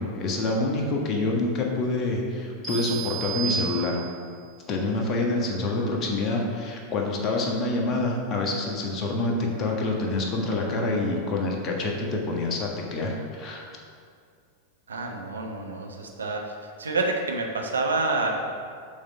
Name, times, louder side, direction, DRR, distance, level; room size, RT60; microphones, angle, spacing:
voice 1, 0.0-4.0 4.7-13.6, left 2 dB, 30° left, -1 dB, 1.4 m, -27 dB
sound 1, 2.6-4.4, right 7 dB, 10° right, 1.9 m, -32 dB
voice 2, 14.9-16.5 16.8-18.5, right 3 dB, 70° right, 1 dB, 0.9 m, -28 dB
7.2 x 4.7 x 5.3 m, 2.2 s
figure-of-eight pair, 90°, 0 cm